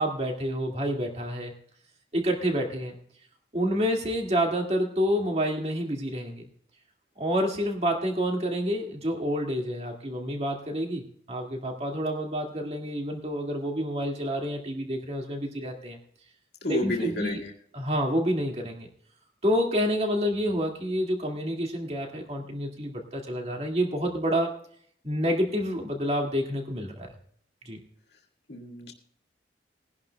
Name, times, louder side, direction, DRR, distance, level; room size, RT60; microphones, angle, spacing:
voice 1, 0.0-1.5 2.1-2.9 3.5-6.4 7.2-16.0 16.7-17.4 17.7-18.9 19.4-24.5 25.0-27.1 27.7-27.8, equal, 35° right, 2 dB, 2.1 m, -28 dB
voice 2, 16.6-17.5 28.5-28.9, left 2 dB, 65° left, 0 dB, 1.8 m, -31 dB
21.5 x 11.0 x 2.3 m, 0.63 s
head